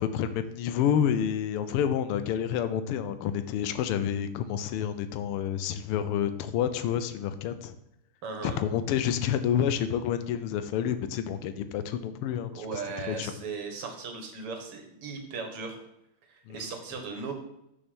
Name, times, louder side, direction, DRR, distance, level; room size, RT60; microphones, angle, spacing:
voice 1, 0.0-7.7 8.4-12.7 13.1-13.3 16.5-16.7, left 9 dB, 85° left, 10 dB, 1.6 m, -29 dB
voice 2, 8.2-8.6 12.5-15.8 16.3-17.3, right 4 dB, 85° right, 4 dB, 2.3 m, -37 dB
6.3 x 6.0 x 6.2 m, 0.82 s
omnidirectional pair, 2.4 m